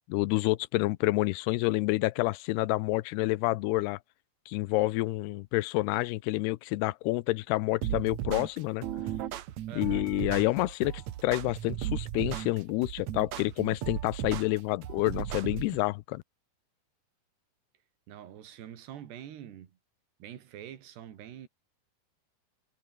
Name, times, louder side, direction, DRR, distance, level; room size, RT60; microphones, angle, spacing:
voice 1, 0.1-4.0 4.5-8.8 9.8-10.9 11.2-16.2, left 20 dB, 85° left, 2.7 m, -28 dB
sound 1, 7.8-15.8, right 12 dB, 65° right, 2.0 m, -36 dB
voice 2, 9.7-10.1 18.1-19.8 20.2-21.5, right 10 dB, 85° right, 4.4 m, -45 dB
omnidirectional pair, 4.6 m